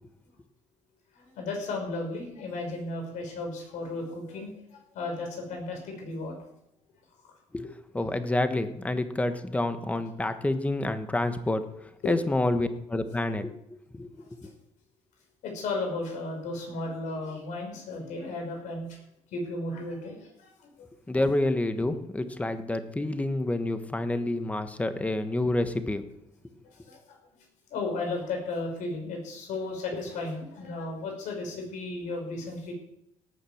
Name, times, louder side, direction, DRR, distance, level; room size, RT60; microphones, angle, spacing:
voice 1, 1.1-6.5 7.2-7.3 12.0-12.1 14.2-14.5 15.4-19.0 19.3-20.9 26.7-27.2 27.7-32.7, left 2 dB, 85° left, 2 dB, 5.9 m, -35 dB
voice 2, 7.9-11.6 12.0-13.5 13.9-14.5 21.1-26.0, left 2 dB, 10° left, 9 dB, 1.3 m, -28 dB
18.0 x 9.0 x 7.2 m, 0.84 s
cardioid pair, 130°, 12 cm